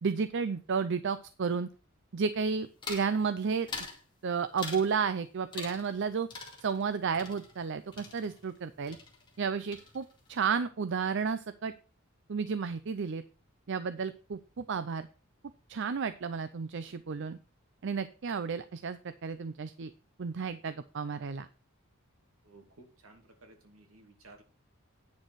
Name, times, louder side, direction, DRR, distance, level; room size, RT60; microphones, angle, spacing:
voice 1, 0.0-1.7 2.1-3.7 4.2-6.3 6.6-9.0 9.4-11.7 12.3-13.2 13.7-15.1 15.7-17.4 17.8-19.9 20.2-21.5, right 5 dB, 60° right, 12 dB, 0.5 m, -32 dB
sound 1, 2.8-3.1 3.7-4.0 4.6-4.9 5.5-6.0 6.3-8.6 8.9-9.4 9.7-10.3, left 4 dB, 20° left, 2.2 m, -43 dB
voice 2, 22.4-24.4, right 2 dB, 75° right, 3 dB, 2.4 m, -56 dB
9.4 x 6.5 x 4.7 m, 0.37 s
head